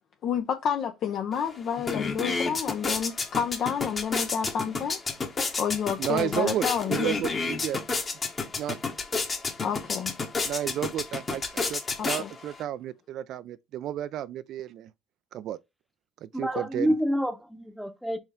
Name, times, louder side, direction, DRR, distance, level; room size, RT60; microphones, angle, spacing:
voice 1, 0.2-5.0 5.6-7.1 9.6-10.1 12.0-12.3, left 8 dB, 55° left, 0.6 m, -29 dB
sound 1, 1.3-1.4 1.7-12.6, left 4 dB, 35° left, 1.2 m, -31 dB
voice 2, 6.0-7.8 8.6-8.8 10.4-14.9 15.3-15.6 16.2-16.9, right 11 dB, 60° right, 0.3 m, -32 dB
voice 3, 16.3-18.2, equal, ahead, 0.8 m, -28 dB
4.4 x 3.2 x 3.6 m
supercardioid pair, 80°, 0 cm